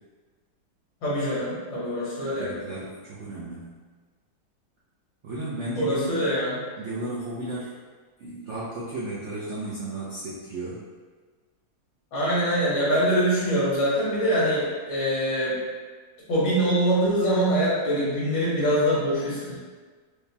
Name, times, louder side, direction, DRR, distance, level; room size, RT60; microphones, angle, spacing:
voice 1, 1.0-2.5 5.8-6.6 12.1-15.5 16.3-19.6, equal, 80° left, -8 dB, 2.0 m, -24 dB
voice 2, 2.4-3.8 5.2-6.2 6.8-7.7 8.2-10.8, right 2 dB, 80° right, -7 dB, 0.6 m, -34 dB
4.9 x 2.2 x 2.7 m, 1.4 s
omnidirectional pair, 2.0 m